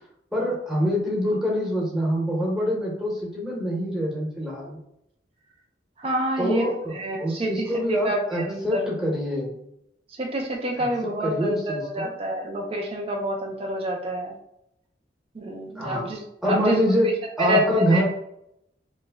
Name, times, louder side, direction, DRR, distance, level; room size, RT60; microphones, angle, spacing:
voice 1, 0.3-4.8 6.4-9.6 10.8-12.1 15.8-16.1 16.4-17.1 17.4-18.0, equal, 5° right, -4 dB, 0.8 m, -25 dB
voice 2, 6.0-8.9 10.2-14.3 15.3-16.8 17.4-18.0, right 1 dB, 35° right, 0 dB, 0.4 m, -28 dB
3.0 x 2.1 x 3.4 m, 0.77 s
head